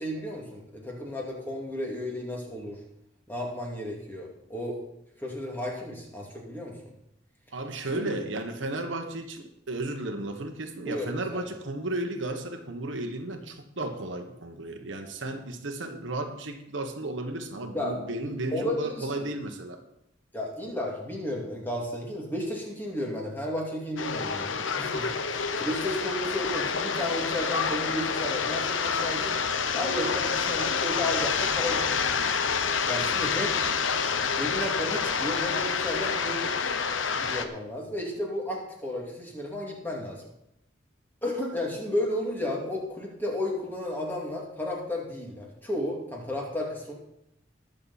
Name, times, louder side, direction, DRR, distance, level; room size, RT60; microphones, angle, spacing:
voice 1, 0.0-2.8 3.3-4.8 5.2-6.8 7.9-8.1 10.9-11.1 17.7-19.3 20.3-29.4 29.7-32.2 32.8-33.6 34.4-36.5 37.1-40.2 41.2-46.9, left 1 dB, 10° left, -2 dB, 2.3 m, -33 dB
voice 2, 7.5-19.8, right 2 dB, 80° right, 5 dB, 1.4 m, -34 dB
sound 1, 24.0-37.4, left 5 dB, 85° left, 0.9 m, -28 dB
19.5 x 6.6 x 4.2 m, 0.82 s
head